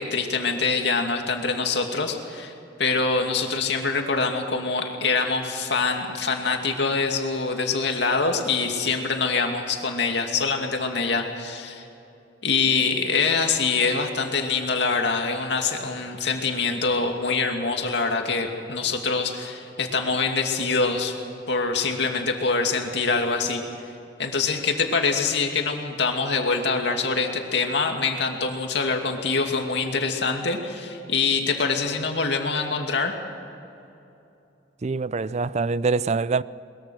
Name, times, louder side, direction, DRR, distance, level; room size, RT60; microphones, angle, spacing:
voice 1, 0.0-2.5 2.8-11.8 12.4-21.1 21.5-23.6 24.2-33.1, left 4 dB, 70° left, 3 dB, 2.5 m, -24 dB
voice 2, 34.8-36.4, right 4 dB, 40° right, 18 dB, 0.5 m, -24 dB
22.0 x 22.0 x 6.5 m, 2.8 s
head